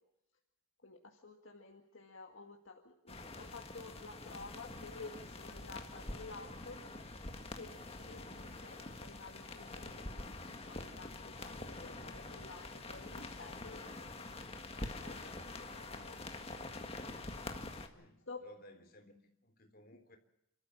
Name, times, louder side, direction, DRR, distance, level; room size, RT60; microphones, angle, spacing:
voice 1, 0.8-6.8 7.6-10.2 10.7-14.4 14.8-16.4 18.3-18.4, left 3 dB, 65° left, 2.0 m, -52 dB
sound 1, 3.1-17.9, left 2 dB, 30° left, 1.9 m, -46 dB
voice 2, 17.9-20.2, equal, 45° left, 3.6 m, -58 dB
29.0 x 13.5 x 7.3 m
head